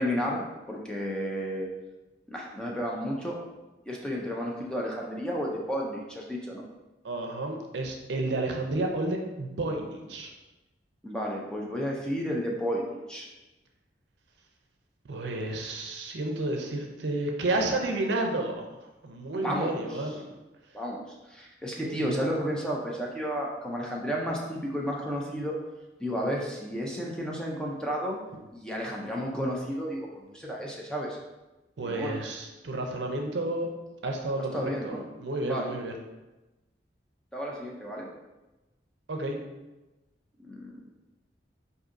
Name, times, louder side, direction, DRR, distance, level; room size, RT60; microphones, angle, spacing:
voice 1, 0.0-1.7 2.3-3.4 3.9-6.6 11.0-13.3 19.4-19.8 20.7-25.6 26.0-28.2 28.5-31.2 31.9-32.2 34.5-35.0 35.4-35.7 37.3-38.1 40.4-40.8, equal, 5° left, -2 dB, 0.4 m, -32 dB
voice 2, 7.0-10.3 15.1-20.2 21.8-22.2 31.8-33.7 34.0-36.0 39.1-39.4, right 2 dB, 70° right, 2 dB, 0.5 m, -31 dB
4.8 x 2.6 x 2.5 m, 1.1 s
head